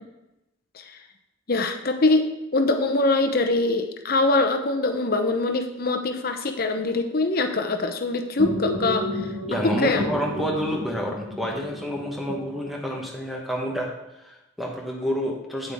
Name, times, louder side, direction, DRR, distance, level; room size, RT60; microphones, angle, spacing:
voice 1, 1.5-9.1 9.6-10.0, left 2 dB, 50° left, 6 dB, 0.8 m, -23 dB
sound 1, 8.4-13.2, left 1 dB, 80° right, 1.5 m, -31 dB
voice 2, 9.5-15.7, equal, ahead, 0 dB, 1.2 m, -29 dB
8.8 x 8.1 x 3.6 m, 0.94 s
head